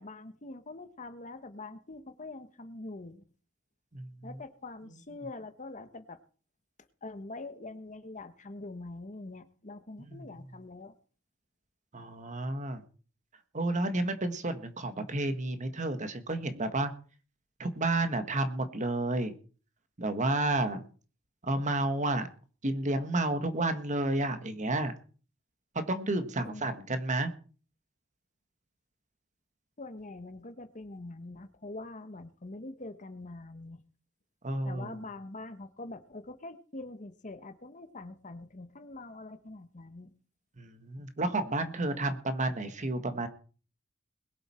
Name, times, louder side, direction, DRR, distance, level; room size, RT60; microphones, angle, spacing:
voice 1, 0.0-3.2 4.2-6.2 7.0-10.9 26.4-26.7 29.8-33.8 34.6-40.1, left 2 dB, 40° left, 10 dB, 1.2 m, -44 dB
voice 2, 11.9-12.8 13.5-16.9 17.6-19.3 20.0-20.8 21.4-22.3 22.6-24.9 25.9-27.3 34.4-35.0 40.6-43.3, right 2 dB, 40° right, 9 dB, 1.5 m, -31 dB
21.5 x 7.9 x 4.4 m, 0.39 s
head